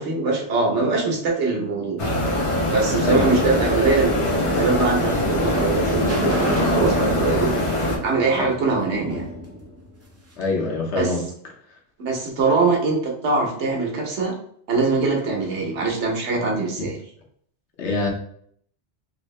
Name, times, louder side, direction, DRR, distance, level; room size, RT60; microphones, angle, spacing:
voice 1, 0.0-2.0 2.7-7.5 8.0-9.2 11.0-11.1 12.0-14.3 14.7-17.0, right 3 dB, 85° right, 0 dB, 1.2 m, -22 dB
sound 1, 2.0-8.0, left 1 dB, 35° left, 0.6 m, -23 dB
sound 2, 2.6-10.5, equal, 20° right, 0.4 m, -31 dB
voice 2, 3.0-3.3 10.4-11.2 16.8-16.9 17.8-18.1, left 3 dB, 85° left, 0 dB, 1.1 m, -24 dB
3.2 x 2.7 x 3.1 m, 0.64 s
omnidirectional pair, 1.1 m